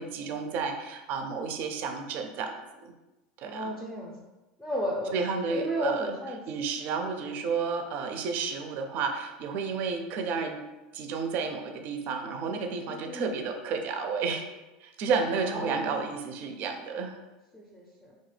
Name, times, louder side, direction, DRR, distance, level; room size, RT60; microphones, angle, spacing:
voice 1, 0.0-2.5 2.8-2.9 3.4-3.7 5.1-6.1 6.5-10.6 10.9-14.5 14.8-17.2, right 5 dB, 55° right, 5 dB, 0.4 m, -31 dB
voice 2, 3.4-4.1 4.6-5.1 5.4-6.4 12.9-13.4 15.4-16.0 17.5-18.1, equal, 10° left, -3 dB, 0.5 m, -34 dB
2.8 x 2.1 x 3.2 m, 1.1 s
supercardioid pair, 110°, 4 cm